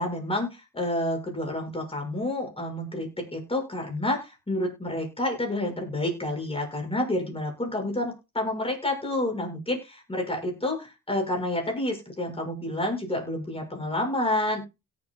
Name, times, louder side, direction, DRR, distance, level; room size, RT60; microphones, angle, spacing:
voice 1, 0.0-14.6, left 1 dB, 15° left, 2 dB, 6.5 m, -29 dB
17.5 x 7.9 x 2.4 m, 0.26 s
cardioid pair, 95°, 32 cm